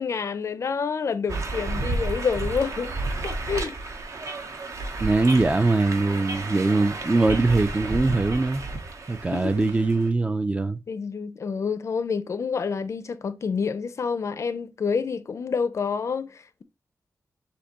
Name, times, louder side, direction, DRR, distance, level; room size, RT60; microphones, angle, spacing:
voice 1, 0.0-2.9 3.2-3.8 9.3-9.6 10.9-16.6, left 5 dB, 55° left, 0.4 m, -28 dB
sound 1, 1.3-10.1, right 2 dB, 55° right, 0.7 m, -32 dB
voice 2, 5.0-8.6 9.1-10.8, right 3 dB, 20° right, 0.4 m, -22 dB
6.5 x 2.7 x 2.8 m
wide cardioid pair, 130°, 6 cm